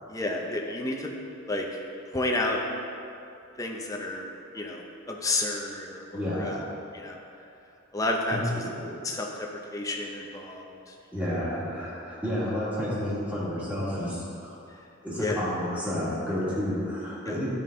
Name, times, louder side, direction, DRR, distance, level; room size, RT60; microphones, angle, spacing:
voice 1, 0.1-1.1 1.5-1.6 2.1-2.6 3.6-4.3 4.5-4.8 5.1-6.6 6.9-7.2 7.9-8.4 9.0-10.9 15.2-15.4 17.3-17.5, left 2 dB, 15° left, 0 dB, 0.6 m, -31 dB
voice 2, 6.1-6.6 8.3-8.9 11.1-14.6 15.0-17.5, equal, 5° right, -9 dB, 1.9 m, -30 dB
10.5 x 5.3 x 3.7 m, 2.6 s
head